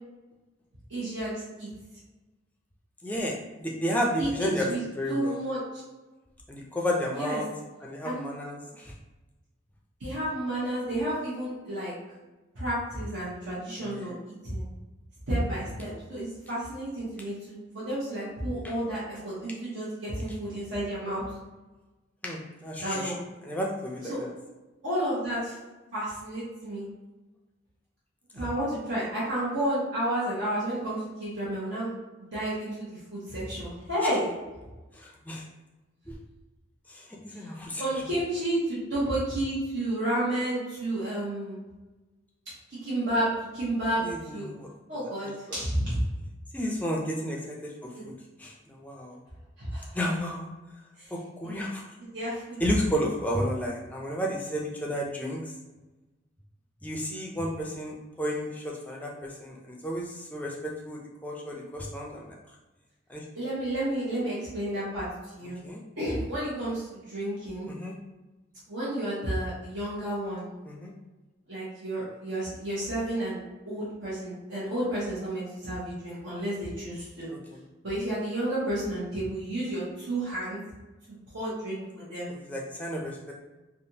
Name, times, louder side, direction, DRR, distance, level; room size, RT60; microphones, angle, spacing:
voice 1, 0.9-1.7 4.2-4.8 5.1-5.6 7.1-7.4 8.0-8.3 10.0-11.9 12.5-14.1 14.4-14.6 15.3-21.2 22.8-23.1 24.1-24.2 24.8-25.5 25.9-26.8 28.3-31.9 32.3-34.3 37.8-41.6 42.7-44.5 44.9-46.0 47.9-48.1 49.6-49.9 51.0-51.1 52.1-52.6 63.3-65.0 65.3-65.6 66.0-67.7 68.7-70.5 71.5-73.4 73.6-77.3 77.8-80.6 81.3-82.3, right 1 dB, 75° right, -10 dB, 1.2 m, -31 dB
voice 2, 3.0-4.7 5.0-5.4 6.5-7.5 7.8-8.9 13.8-14.2 18.6-18.7 22.2-23.1 23.4-24.3 28.4-28.5 34.9-35.4 36.1-36.2 36.9-37.8 44.0-44.7 45.2-45.6 46.5-48.1 48.4-49.2 49.9-50.5 51.1-51.8 52.6-55.5 56.8-62.3 63.1-63.3 65.6-65.8 67.6-67.9 70.6-70.9 77.3-77.6 82.3-83.3, equal, 10° left, -2 dB, 0.4 m, -32 dB
3.4 x 2.5 x 2.8 m, 1.1 s
head